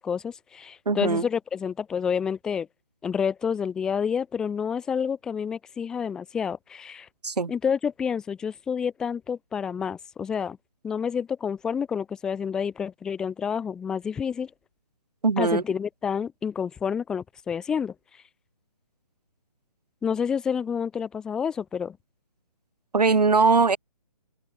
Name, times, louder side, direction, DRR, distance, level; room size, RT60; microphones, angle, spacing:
voice 1, 0.0-2.7 3.0-7.1 7.5-10.6 10.8-14.5 15.4-17.9 20.0-22.0, left 7 dB, 5° left, 1.3 m, -29 dB
voice 2, 0.9-1.2 7.2-7.5 15.2-15.6 22.9-23.8, right 4 dB, 85° right, 3.6 m, -21 dB
hypercardioid pair, 175°, 20 cm